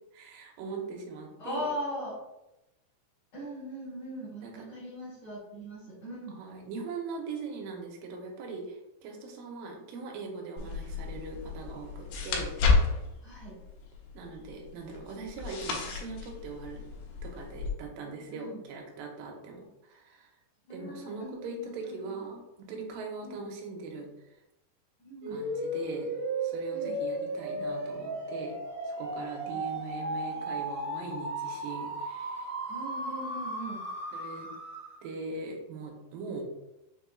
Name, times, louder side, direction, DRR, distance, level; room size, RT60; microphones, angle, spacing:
voice 1, 0.1-1.7 4.4-4.5 6.4-13.0 14.1-16.8 17.2-20.3 20.7-22.4 22.7-24.4 25.3-26.1 26.4-28.5 28.8-32.5 34.1-34.5 35.0-36.4, right 3 dB, 75° right, 0 dB, 2.2 m, -41 dB
voice 2, 1.4-2.2 3.3-6.3 13.2-13.5 18.0-18.6 20.7-22.2 23.2-23.4 25.0-25.4 26.7-27.0 29.4-30.6 32.7-33.8, equal, 50° left, -11 dB, 2.0 m, -40 dB
sound 1, 10.6-17.7, left 4 dB, 75° left, 2.4 m, -32 dB
sound 2, 25.2-35.1, right 1 dB, 90° right, 1.5 m, -35 dB
6.1 x 3.5 x 2.3 m, 0.92 s
omnidirectional pair, 4.7 m